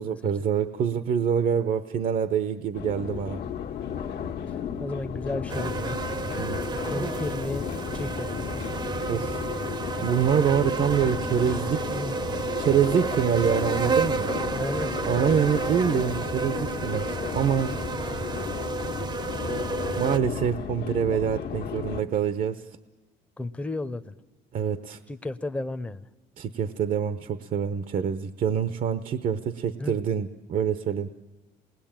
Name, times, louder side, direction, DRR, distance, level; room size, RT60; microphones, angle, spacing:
voice 1, 0.0-3.4 6.4-6.6 9.1-9.5 10.0-11.8 12.6-14.3 15.0-17.8 20.0-22.6 24.5-25.0 26.4-31.1, right 8 dB, 55° right, 11 dB, 0.9 m, -26 dB
sound 1, 2.7-22.0, left 8 dB, 75° left, 1.6 m, -34 dB
voice 2, 4.5-6.0 6.8-7.7 7.9-8.6 11.9-12.2 14.1-15.0 23.4-24.2 25.1-26.1 29.8-30.0, left 2 dB, 10° left, 9 dB, 0.8 m, -34 dB
sound 2, 5.5-20.2, right 4 dB, 25° right, 0.8 m, -31 dB
27.5 x 20.5 x 9.0 m, 1.2 s
cardioid pair, 110°, 17 cm